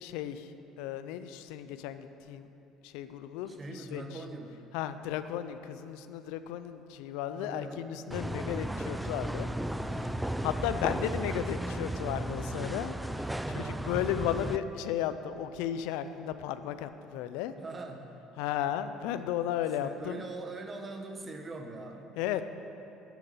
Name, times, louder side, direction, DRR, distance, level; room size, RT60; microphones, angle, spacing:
voice 1, 0.0-2.5 2.8-4.2 4.7-9.5 10.4-13.3 13.5-17.5 18.4-20.3 22.2-22.4, left 10 dB, 80° left, 11 dB, 0.4 m, -34 dB
voice 2, 3.5-4.6 7.3-7.9 9.9-10.3 13.4-13.8 17.6-18.1 19.8-22.1, right 2 dB, 30° right, 5 dB, 1.0 m, -42 dB
sound 1, 8.1-14.6, right 1 dB, 5° right, 0.3 m, -34 dB
8.5 x 8.3 x 5.4 m, 2.8 s
supercardioid pair, 85°, 0 cm